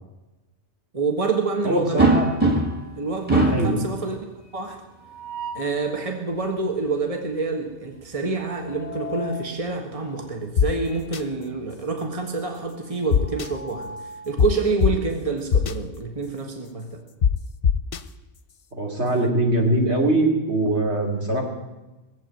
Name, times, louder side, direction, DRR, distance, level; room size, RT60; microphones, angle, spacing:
voice 1, 0.9-2.1 3.0-4.2 4.5-4.8 5.5-13.9 14.3-17.0, right 4 dB, 30° right, 3 dB, 1.6 m, -27 dB
voice 2, 1.6-2.2 3.5-3.8 18.7-21.5, right 2 dB, 80° right, 0 dB, 3.2 m, -22 dB
sound 1, 2.0-2.9 3.3-3.8 5.0-5.8 8.4-9.4 10.9-11.0 11.4-11.5 13.0-14.3, right 2 dB, 10° right, 2.0 m, -25 dB
sound 2, 10.6-10.7 11.1-11.2 13.1-13.5 14.4-14.5 14.8-14.9 15.5-15.7 17.2-17.3 17.6-18.0, left 7 dB, 60° left, 0.9 m, -18 dB
18.5 x 7.9 x 9.0 m, 1.1 s
omnidirectional pair, 1.1 m